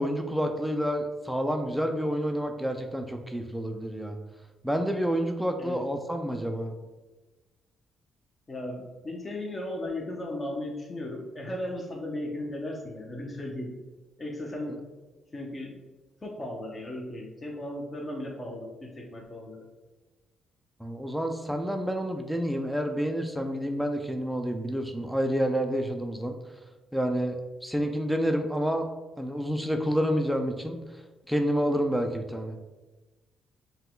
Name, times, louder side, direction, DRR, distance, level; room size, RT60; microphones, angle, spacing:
voice 1, 0.0-4.2 4.6-6.7 20.8-26.3 26.9-28.9 29.2-30.8 31.3-32.5, equal, ahead, 4 dB, 0.4 m, -29 dB
voice 2, 8.5-13.8 14.2-14.8 15.3-15.8 16.2-19.6, left 1 dB, 25° left, -1 dB, 0.8 m, -36 dB
5.5 x 2.3 x 3.7 m, 1.2 s
cardioid pair, 90°, 0 cm